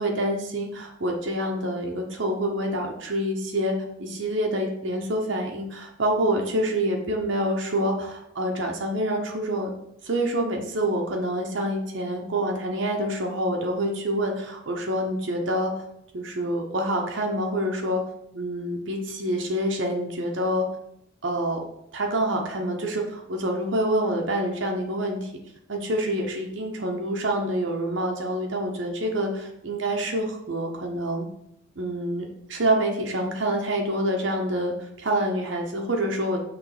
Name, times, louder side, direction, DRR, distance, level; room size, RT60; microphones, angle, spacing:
voice 1, 0.0-3.7 4.0-9.7 10.0-15.7 16.1-18.0 18.3-20.7 21.2-21.6 21.9-25.3 25.7-31.3 31.8-36.4, right 1 dB, 65° right, 1 dB, 0.9 m, -27 dB
6.1 x 3.4 x 5.0 m, 0.78 s
head